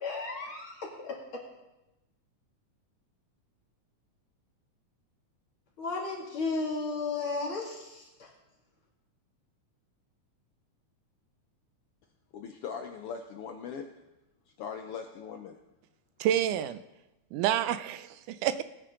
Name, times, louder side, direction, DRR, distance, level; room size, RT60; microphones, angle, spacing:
voice 1, 0.0-1.2 5.8-8.3, left 3 dB, 45° left, -2 dB, 3.2 m, -34 dB
voice 2, 12.3-13.9 14.6-15.6, left 6 dB, 90° left, 5 dB, 1.2 m, -40 dB
voice 3, 16.2-16.8 17.3-18.6, right 11 dB, 85° right, 12 dB, 2.1 m, -28 dB
20.5 x 9.3 x 3.8 m, 0.99 s
omnidirectional pair, 3.5 m